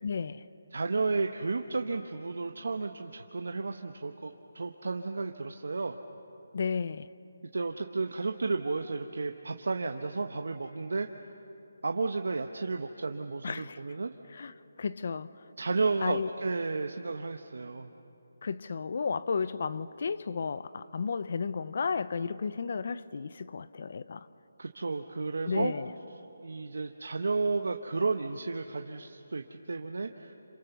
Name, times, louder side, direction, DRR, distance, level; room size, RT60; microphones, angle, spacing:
voice 1, 0.0-0.5 6.5-7.1 13.4-13.8 14.3-15.3 16.0-16.3 18.4-24.3 25.5-25.9, left 5 dB, 55° left, 0.6 m, -33 dB
voice 2, 0.7-6.0 7.5-11.1 11.8-14.1 15.6-17.9 24.6-25.7 26.4-30.3, right 3 dB, 75° right, 1.1 m, -32 dB
28.5 x 27.0 x 6.9 m
figure-of-eight pair, 165°, 0 cm